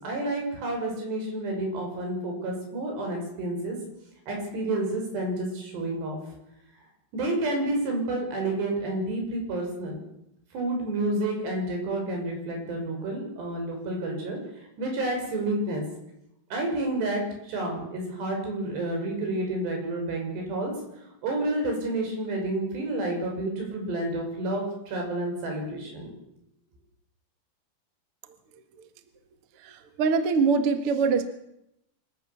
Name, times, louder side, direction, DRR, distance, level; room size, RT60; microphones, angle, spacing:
voice 1, 0.0-3.8 4.3-6.2 7.1-10.0 10.5-14.4 14.8-15.8 16.5-20.7 21.2-26.1, right 2 dB, 70° right, 1 dB, 8.2 m, -30 dB
voice 2, 29.6-31.3, right 5 dB, 50° right, 8 dB, 1.7 m, -23 dB
26.5 x 15.0 x 7.2 m, 0.81 s
omnidirectional pair, 5.0 m